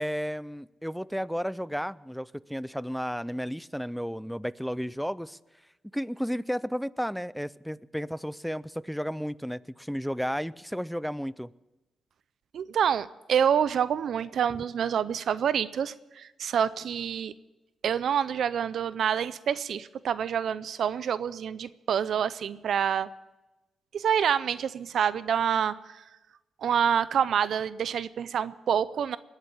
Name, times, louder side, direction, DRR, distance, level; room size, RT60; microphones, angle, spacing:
voice 1, 0.0-5.4 5.9-11.5, equal, ahead, 20 dB, 0.4 m, -33 dB
voice 2, 12.5-17.3 17.8-23.1 23.9-26.1 26.6-29.2, right 8 dB, 70° right, 16 dB, 0.4 m, -27 dB
20.5 x 8.2 x 8.2 m, 1.1 s
cardioid pair, 80°, 0 cm